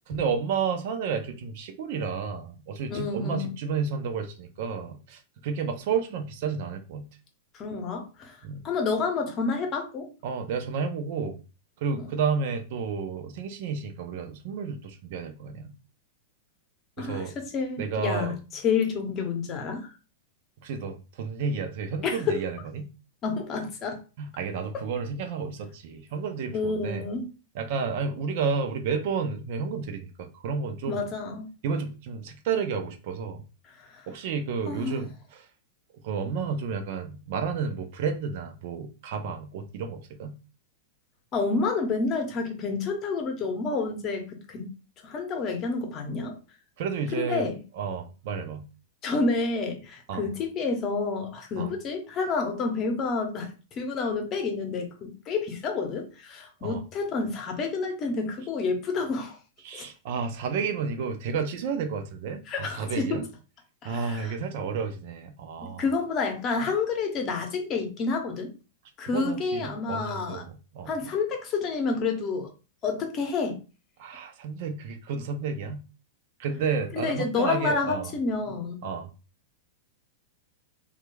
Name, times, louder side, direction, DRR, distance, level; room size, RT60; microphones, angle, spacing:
voice 1, 0.1-7.0 8.4-8.6 10.2-11.4 11.8-15.7 17.0-17.3 17.8-18.4 20.6-22.9 24.2-27.1 27.5-31.0 31.6-33.4 34.1-35.5 36.0-40.3 46.8-47.5 47.8-48.6 50.1-50.3 51.6-51.7 56.6-56.8 59.6-63.2 63.8-65.8 69.1-70.9 74.0-75.8 76.4-78.1 78.8-79.1, right 5 dB, 60° right, 0.5 m, -31 dB
voice 2, 2.9-3.5 7.5-8.4 8.6-10.1 12.0-12.1 17.0-19.9 22.0-22.4 23.2-24.0 24.7-24.8 26.5-27.3 30.9-31.5 33.7-34.1 34.7-35.0 41.3-44.7 45.0-46.4 47.1-47.6 49.0-59.4 59.7-59.9 62.5-63.2 63.8-64.4 65.6-68.5 69.0-70.4 70.9-72.5 72.8-73.6 76.9-78.8, left 4 dB, 35° left, 0.8 m, -29 dB
2.9 x 2.3 x 2.2 m
hypercardioid pair, 110°, 0 cm